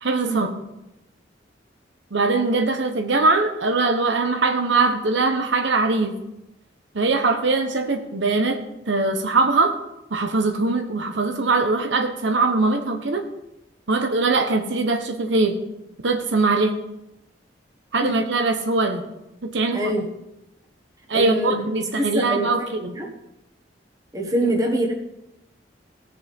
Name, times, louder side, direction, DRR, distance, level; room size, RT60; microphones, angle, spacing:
voice 1, 0.0-0.5 2.1-6.1 6.9-8.6 8.9-9.8 10.1-13.2 13.9-15.6 16.0-16.7 17.9-19.0 19.4-19.9 21.1-22.9, right 3 dB, 85° right, 6 dB, 1.0 m, -21 dB
voice 2, 19.7-20.1 21.1-21.6 22.0-22.5 22.9-23.1 24.1-24.9, right 1 dB, 20° right, 1 dB, 1.4 m, -24 dB
16.5 x 6.8 x 3.6 m, 0.90 s
head